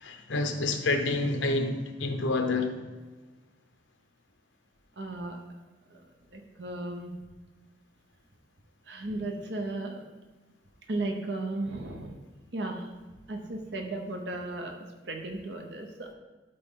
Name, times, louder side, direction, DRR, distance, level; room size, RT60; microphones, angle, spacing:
voice 1, 0.0-2.7, left 2 dB, 80° left, 0.8 m, -28 dB
voice 2, 5.0-5.4 5.9-6.0 6.3-7.1 8.9-10.1 10.9-12.1 12.5-12.9 13.3-16.1, right 2 dB, 65° right, 0.9 m, -35 dB
12.0 x 4.1 x 3.7 m
head